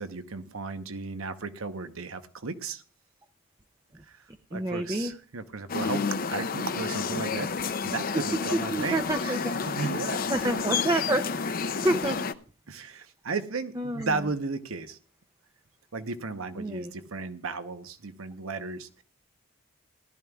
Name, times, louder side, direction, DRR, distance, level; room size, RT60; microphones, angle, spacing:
voice 1, 0.0-2.8 4.1-4.2 4.5-6.0 6.3-10.2 11.7-11.8 12.7-15.0 15.9-19.0, right 4 dB, 75° right, 9 dB, 0.9 m, -35 dB
voice 2, 4.5-5.1 8.5-9.5 10.3-11.2 11.8-12.2 13.8-14.1 16.6-16.9, right 1 dB, 15° right, 6 dB, 0.5 m, -28 dB
sound 1, 5.7-12.3, left 5 dB, 45° left, 0.5 m, -30 dB
18.5 x 12.5 x 2.3 m, 0.38 s
head